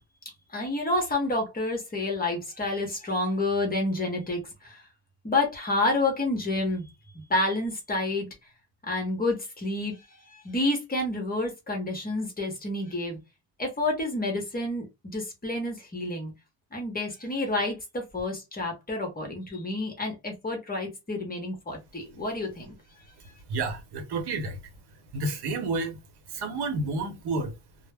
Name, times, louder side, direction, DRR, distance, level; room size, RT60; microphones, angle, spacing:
voice 1, 0.5-4.9 5.2-6.9 7.1-8.3 8.8-13.2 13.6-16.3 16.7-22.7, left 2 dB, 20° left, 0.8 m, -29 dB
voice 2, 23.5-24.6 25.1-26.0 26.3-27.6, right 3 dB, 65° right, 0.8 m, -30 dB
2.1 x 2.0 x 3.4 m
cardioid pair, 135°, 43 cm